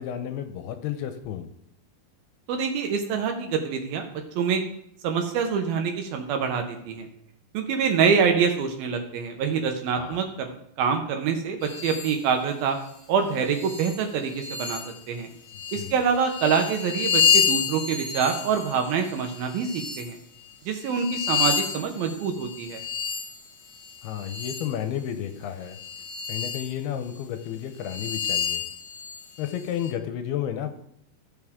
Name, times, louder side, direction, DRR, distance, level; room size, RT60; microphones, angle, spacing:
voice 1, 0.0-1.5 10.0-10.2 15.7-16.0 24.0-25.8 26.3-28.6 29.4-30.7, left 10 dB, 80° left, 8 dB, 2.6 m, -32 dB
voice 2, 2.5-4.1 4.4-4.6 5.0-7.1 7.5-12.8 13.1-14.8 15.1-15.3 15.7-20.2 20.7-22.8, right 6 dB, 75° right, 5 dB, 2.5 m, -25 dB
sound 1, 11.6-12.2 12.8-13.0 13.4-15.0 15.5-20.1 20.7-24.8 25.6-26.7 27.2-27.3 27.8-29.9, left 7 dB, 55° left, 2.2 m, -29 dB
14.5 x 7.0 x 3.6 m, 0.72 s
omnidirectional pair, 4.8 m